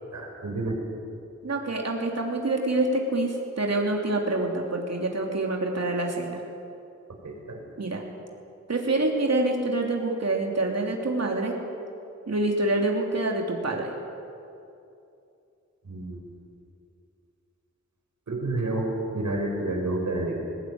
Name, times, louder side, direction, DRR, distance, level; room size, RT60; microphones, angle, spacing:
voice 1, 0.1-0.8 7.2-7.6 15.8-16.2 18.3-20.4, right 2 dB, 75° right, 0 dB, 5.8 m, -29 dB
voice 2, 1.4-6.4 7.8-8.0 8.7-11.6 12.3-13.9, right 2 dB, 60° right, 0 dB, 3.2 m, -26 dB
20.5 x 20.0 x 9.6 m, 2.7 s
wide cardioid pair, 90°, 29 cm